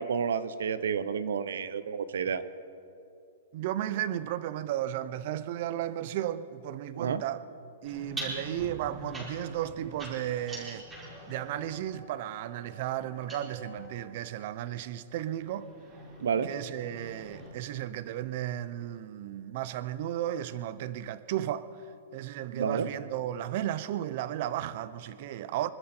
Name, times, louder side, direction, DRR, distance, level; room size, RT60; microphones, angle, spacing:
voice 1, 0.0-2.4 7.0-7.2 16.2-16.5 22.5-22.9, right 7 dB, 80° right, 0.9 m, -30 dB
voice 2, 3.5-7.4 7.8-10.9 11.3-15.7 16.4-21.7 22.1-25.7, right 12 dB, 40° right, 0.6 m, -34 dB
sound 1, 7.8-13.9 14.8-17.5, right 1 dB, 10° right, 5.0 m, -44 dB
25.0 x 13.0 x 4.4 m
hypercardioid pair, 170°, 0 cm